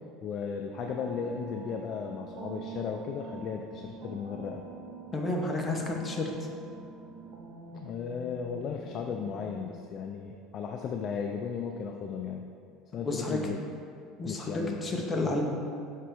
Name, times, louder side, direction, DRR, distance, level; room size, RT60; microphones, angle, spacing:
voice 1, 0.2-4.6 7.7-12.5 12.9-13.6 14.2-15.4, left 6 dB, 40° left, 3 dB, 0.3 m, -36 dB
sound 1, 0.7-9.8, right 4 dB, 50° right, 0.7 m, -46 dB
voice 2, 5.1-6.3 13.0-13.4 14.2-15.4, left 2 dB, 20° left, 0 dB, 0.7 m, -31 dB
6.6 x 3.9 x 4.6 m, 2.4 s
cardioid pair, 155°, 0 cm